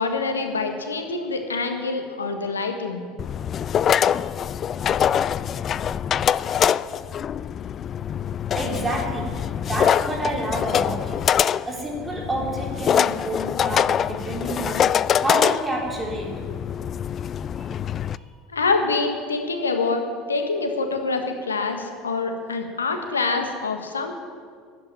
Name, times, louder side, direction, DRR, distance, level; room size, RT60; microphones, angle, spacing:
voice 1, 0.0-3.1 18.5-20.0 20.3-24.1, left 4 dB, 80° left, 5 dB, 1.6 m, -25 dB
sound 1, 3.2-18.2, left 9 dB, 40° left, 0.3 m, -24 dB
voice 2, 8.5-11.2 11.7-16.3 17.5-17.8 18.1-18.3, right 1 dB, 15° right, -2 dB, 4.2 m, -29 dB
13.0 x 9.0 x 9.8 m, 2.1 s
figure-of-eight pair, 70°, 0 cm